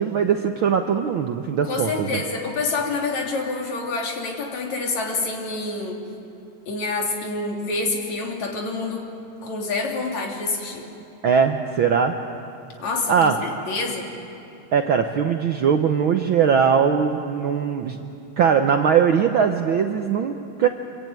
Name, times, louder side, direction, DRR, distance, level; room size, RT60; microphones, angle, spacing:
voice 1, 0.0-2.2 11.2-12.1 13.1-13.3 14.7-18.0 18.4-20.7, right 7 dB, 65° right, 5 dB, 1.2 m, -20 dB
voice 2, 1.6-6.0 6.7-9.1 9.4-10.9 12.8-14.1, left 3 dB, 70° left, 0 dB, 4.1 m, -27 dB
26.0 x 22.0 x 9.2 m, 2.8 s
omnidirectional pair, 3.3 m